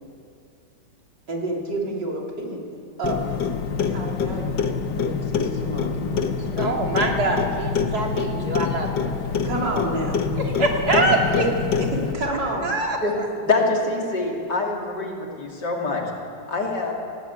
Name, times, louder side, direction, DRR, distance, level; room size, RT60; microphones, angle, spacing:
voice 1, 1.3-2.6 3.0-3.5 3.8-6.5 9.4-10.2 11.0-11.5 11.8-12.9, right 1 dB, 80° right, -2 dB, 4.0 m, -30 dB
Clock, 3.0-12.1, left 6 dB, 90° left, 1.8 m, -26 dB
voice 2, 6.6-9.1 10.4-11.4 12.6-13.3, right 2 dB, 60° right, 0 dB, 3.3 m, -24 dB
voice 3, 13.5-16.0 16.5-16.9, left 3 dB, 70° left, 0 dB, 3.4 m, -24 dB
19.5 x 17.5 x 8.3 m, 2.5 s
omnidirectional pair, 1.9 m